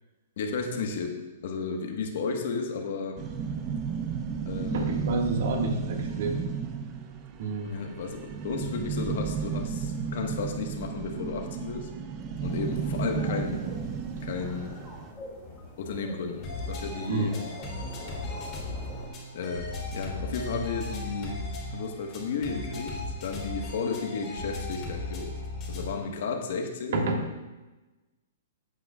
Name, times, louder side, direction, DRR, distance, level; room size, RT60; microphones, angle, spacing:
voice 1, 0.4-3.2 4.5-5.0 7.6-11.9 12.4-13.7 14.2-14.7 15.8-17.4 19.3-21.4 21.7-25.3 25.7-27.0, left 4 dB, 60° left, 3 dB, 1.3 m, -33 dB
sound 1, 3.2-15.1, right 6 dB, 25° right, 0.6 m, -33 dB
voice 2, 4.7-6.4 7.4-7.7 17.1-17.4 26.9-27.2, right 2 dB, 60° right, 2 dB, 1.8 m, -29 dB
sound 2, 12.4-19.1, left 1 dB, 5° left, 2.7 m, -45 dB
sound 3, 16.4-26.0, left 2 dB, 25° left, 3.1 m, -37 dB
14.5 x 8.3 x 2.4 m, 1.1 s
hypercardioid pair, 155°, 0 cm